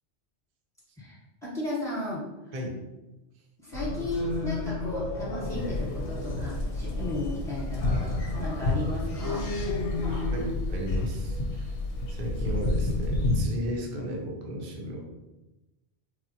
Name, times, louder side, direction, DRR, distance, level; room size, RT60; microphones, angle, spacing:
voice 1, 1.0-2.5 3.6-9.5, left 1 dB, 5° left, -8 dB, 0.9 m, -35 dB
sound 1, 3.7-10.5, left 2 dB, 90° left, 0.9 m, -33 dB
sound 2, 5.4-13.4, left 2 dB, 65° left, 0.7 m, -30 dB
voice 2, 10.0-11.8 12.1-15.1, equal, 55° right, -1 dB, 0.7 m, -35 dB
3.5 x 2.0 x 2.7 m, 1.0 s
omnidirectional pair, 1.1 m